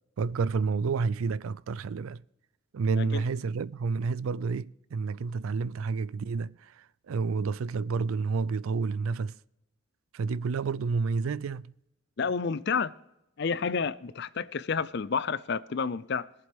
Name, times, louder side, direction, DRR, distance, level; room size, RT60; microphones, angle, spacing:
voice 1, 0.2-2.2 2.7-9.4 10.1-11.7, right 4 dB, 75° right, 0.4 m, -30 dB
voice 2, 12.2-12.9 13.4-16.3, left 5 dB, 50° left, 0.5 m, -30 dB
21.5 x 7.6 x 3.5 m
head